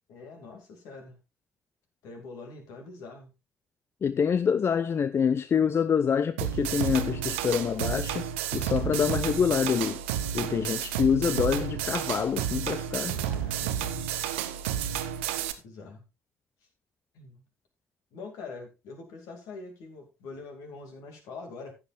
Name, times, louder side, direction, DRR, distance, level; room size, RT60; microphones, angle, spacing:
voice 1, 0.1-1.2 2.0-3.3 13.2-14.0 15.4-16.0 17.1-17.5 18.1-21.7, left 4 dB, 65° left, 2.6 m, -44 dB
voice 2, 4.0-8.2 8.5-10.0 10.3-13.2, left 7 dB, 40° left, 0.5 m, -26 dB
sound 1, 6.4-15.5, right 9 dB, 75° right, 0.7 m, -31 dB
14.5 x 8.2 x 2.5 m
figure-of-eight pair, 40°, 6 cm